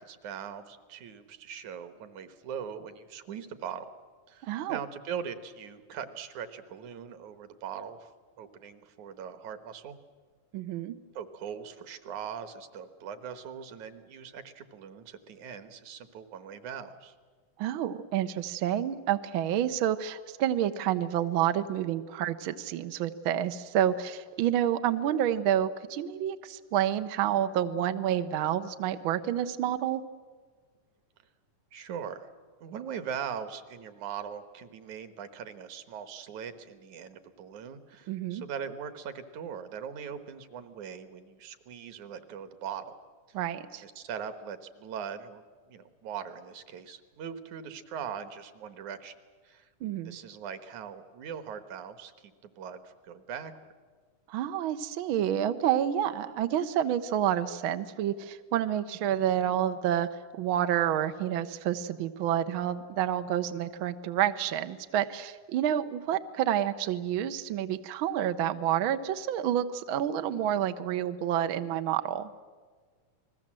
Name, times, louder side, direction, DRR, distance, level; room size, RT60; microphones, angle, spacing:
voice 1, 0.0-3.9 4.3-8.1 8.4-10.0 11.1-17.1 31.7-32.3 32.6-43.0 43.8-49.1 49.4-49.7 50.0-53.5, right 7 dB, 70° right, 11 dB, 2.6 m, -41 dB
voice 2, 4.4-4.8 10.5-10.9 17.6-30.0 38.1-38.4 43.3-43.8 49.8-50.2 54.3-60.1 60.4-72.3, right 10 dB, 90° right, 9 dB, 1.1 m, -29 dB
30.0 x 20.5 x 7.6 m, 1.5 s
omnidirectional pair, 3.7 m